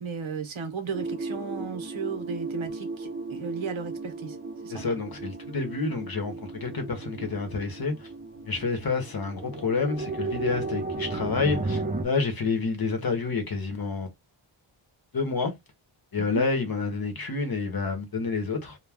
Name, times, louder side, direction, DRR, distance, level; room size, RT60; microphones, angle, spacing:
voice 1, 0.0-4.4 4.6-4.9 16.3-16.4, right 5 dB, 70° right, 0.8 m, -35 dB
sound 1, 0.9-12.0, right 3 dB, 20° right, 0.5 m, -35 dB
voice 2, 4.7-8.1 8.5-14.1 15.1-15.5 16.1-18.8, left 4 dB, 45° left, 0.8 m, -29 dB
2.3 x 2.2 x 3.3 m
wide cardioid pair, 80°, 49 cm